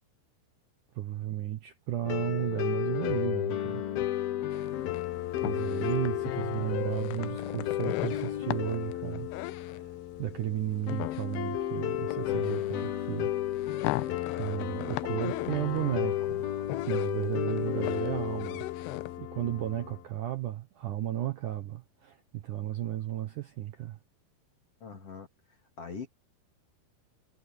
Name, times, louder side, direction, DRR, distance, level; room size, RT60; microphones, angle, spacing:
voice 1, 0.9-3.8 5.4-9.3 9.6-13.3 14.4-16.5 16.9-18.7 19.2-24.0, right 13 dB, 65° right, 2.2 m, -34 dB
sound 1, 2.0-20.1, left 13 dB, 65° left, 3.1 m, -33 dB
sound 2, 4.5-19.2, left 18 dB, 85° left, 2.7 m, -40 dB
voice 2, 24.8-25.3 25.8-26.1, left 5 dB, 40° left, 3.2 m, -41 dB
omnidirectional pair, 4.9 m